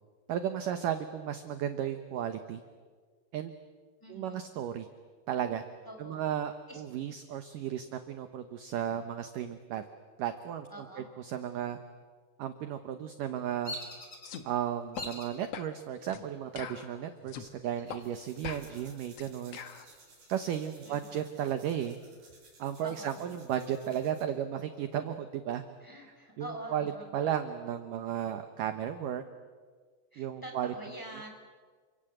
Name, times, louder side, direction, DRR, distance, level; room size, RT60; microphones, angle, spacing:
voice 1, 0.3-2.6 3.3-3.5 4.1-4.9 5.3-5.6 6.0-9.8 10.2-10.7 11.0-11.8 12.4-13.8 14.4-19.6 20.3-22.0 22.6-25.6 26.4-29.2 30.2-30.7, right 10 dB, 70° right, 9 dB, 2.2 m, -34 dB
voice 2, 4.0-4.5 5.9-6.2 6.7-6.8 10.7-11.0 20.9-21.1 22.8-23.4 25.8-27.1 30.1-31.3, right 1 dB, 5° left, 2 dB, 4.0 m, -45 dB
Bird vocalization bird call bird song, 13.6-14.4 14.9-15.4 15.9-16.5 17.6-18.4 18.7-18.8 19.3-20.7, left 1 dB, 20° left, 4.5 m, -44 dB
sound 1, 14.2-14.4 15.0-15.1 15.5-15.7 16.1-16.3 16.6-17.5 17.9-18.0 18.4-19.8, left 8 dB, 75° left, 1.4 m, -42 dB
sound 2, 17.9-24.3, right 3 dB, 45° right, 5.4 m, -59 dB
29.0 x 25.5 x 7.9 m, 1.5 s
omnidirectional pair, 4.9 m